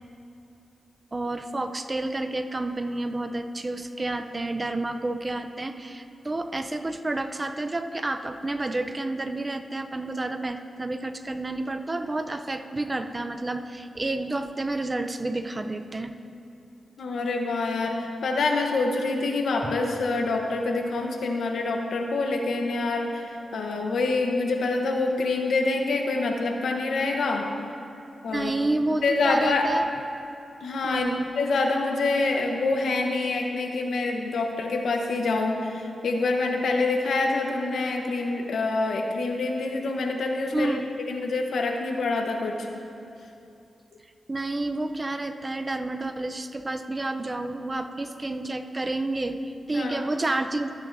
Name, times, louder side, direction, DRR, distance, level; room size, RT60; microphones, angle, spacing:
voice 1, 1.1-16.2 19.6-19.7 28.3-29.9 30.8-31.3 40.5-40.9 44.3-50.7, right 2 dB, 30° right, 7 dB, 0.5 m, -30 dB
voice 2, 17.0-27.5 28.2-28.5 29.0-29.7 30.6-31.1 31.4-40.8 41.1-42.7 49.7-50.0, left 3 dB, 80° left, 2 dB, 0.9 m, -26 dB
13.5 x 9.3 x 2.6 m, 2.7 s
cardioid pair, 65°, 0 cm